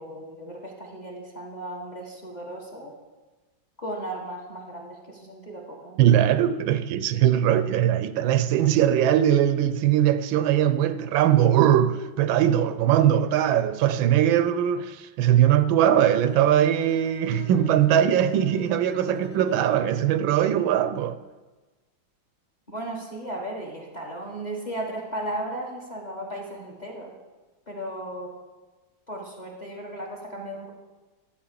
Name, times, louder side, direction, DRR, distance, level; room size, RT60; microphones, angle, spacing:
voice 1, 0.0-2.9 3.8-6.0 22.7-27.1 27.7-28.4 29.1-30.7, right 1 dB, 25° left, 1.3 m, -35 dB
voice 2, 6.0-21.2, right 10 dB, 80° right, 1.3 m, -21 dB
Bowed string instrument, 16.0-20.1, left 3 dB, 75° left, 1.9 m, -43 dB
12.0 x 4.8 x 7.4 m
omnidirectional pair, 2.1 m